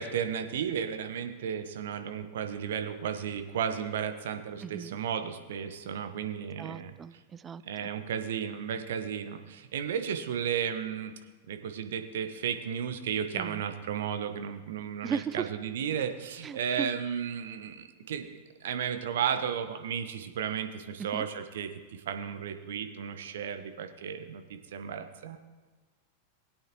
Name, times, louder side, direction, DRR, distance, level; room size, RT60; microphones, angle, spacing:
voice 1, 0.0-6.9 7.6-11.1 11.5-25.4, right 8 dB, 60° right, 8 dB, 1.0 m, -34 dB
voice 2, 4.6-5.0 6.6-7.9 13.3-13.6 15.0-15.5 16.4-17.0 21.0-21.3, right 7 dB, 20° right, 17 dB, 0.3 m, -37 dB
20.5 x 8.7 x 3.0 m, 1.3 s
figure-of-eight pair, 90°, 0 cm